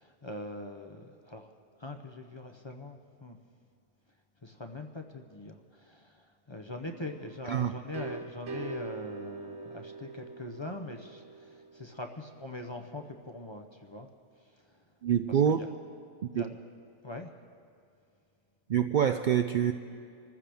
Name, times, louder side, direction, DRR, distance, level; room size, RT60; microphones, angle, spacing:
voice 1, 0.0-1.5 1.8-3.4 4.4-14.1 15.3-15.7 16.3-16.6 17.0-17.3, left 2 dB, 30° left, 4 dB, 0.6 m, -42 dB
sound 1, 6.9-12.5, right 5 dB, 85° right, 1.4 m, -44 dB
voice 2, 15.0-15.7 16.2-16.5 18.7-19.7, right 9 dB, 60° right, 8 dB, 0.5 m, -26 dB
25.5 x 14.5 x 3.5 m, 2.4 s
omnidirectional pair, 1.2 m